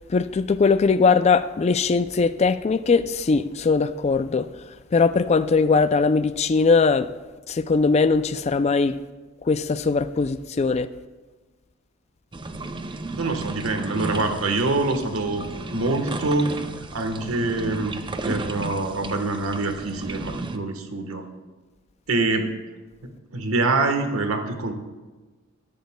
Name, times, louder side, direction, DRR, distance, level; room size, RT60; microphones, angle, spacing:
voice 1, 0.1-4.5 4.9-7.1 7.5-9.0 9.5-10.9, left 4 dB, 30° left, 0.3 m, -20 dB
sound 1, 12.3-20.6, right 2 dB, 25° right, 0.5 m, -34 dB
voice 2, 13.2-15.4 15.7-16.5 16.8-18.0 18.2-21.2 22.1-22.5 23.0-24.7, right 2 dB, 90° right, 1.3 m, -25 dB
19.5 x 10.5 x 2.2 m
head